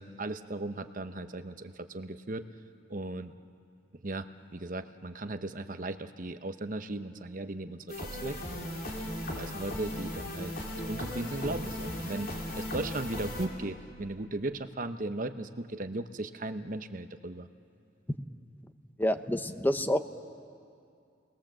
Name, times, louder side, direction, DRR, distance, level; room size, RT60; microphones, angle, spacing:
voice 1, 0.0-2.4 2.9-3.3 4.0-4.3 4.5-8.8 9.3-10.5 10.9-12.3 12.6-17.5, right 2 dB, 45° right, 9 dB, 0.9 m, -37 dB
sound 1, 7.9-13.5, left 1 dB, 50° left, 3.8 m, -37 dB
voice 2, 19.0-20.0, equal, 10° left, 9 dB, 0.8 m, -27 dB
30.0 x 20.5 x 7.6 m, 2.4 s
head